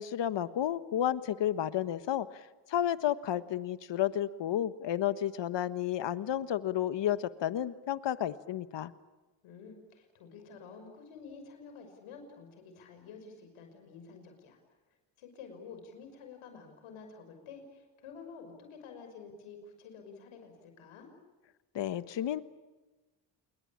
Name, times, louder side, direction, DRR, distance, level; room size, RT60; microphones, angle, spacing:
voice 1, 0.0-2.4 2.7-8.9 21.7-22.4, left 11 dB, 60° left, 14 dB, 1.4 m, -31 dB
voice 2, 9.4-14.6 15.2-21.1, left 5 dB, 80° left, 6 dB, 6.0 m, -50 dB
28.5 x 22.0 x 8.7 m, 1.2 s
supercardioid pair, 75°, 49 cm